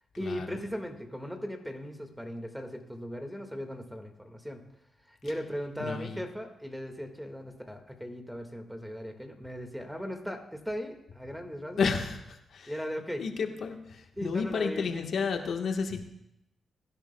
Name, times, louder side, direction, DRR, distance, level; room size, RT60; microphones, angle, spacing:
voice 1, 0.2-4.6 5.1-11.9 12.7-13.3 14.2-15.1, equal, ahead, 5 dB, 1.8 m, -38 dB
voice 2, 5.8-6.2 11.8-12.2 12.5-12.7 13.2-13.8 14.2-16.1, left 5 dB, 70° left, 4 dB, 1.3 m, -30 dB
21.5 x 10.5 x 2.3 m, 0.83 s
cardioid pair, 60°, 0 cm